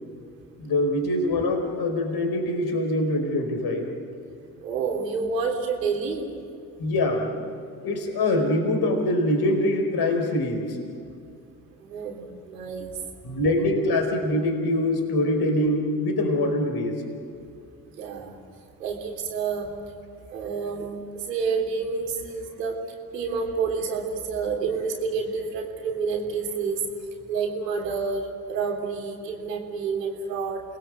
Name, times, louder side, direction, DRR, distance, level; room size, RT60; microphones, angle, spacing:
voice 1, 0.6-3.9 6.8-7.3 7.8-10.8 13.2-17.0, left 1 dB, 50° left, 4 dB, 4.6 m, -24 dB
voice 2, 4.6-6.2 11.8-12.9 17.9-18.3 18.8-19.7 20.3-20.9 21.1-22.8 23.1-26.8 27.3-30.6, right 5 dB, 85° right, 2 dB, 3.4 m, -29 dB
29.0 x 20.5 x 7.7 m, 2.4 s
hypercardioid pair, 60°, 48 cm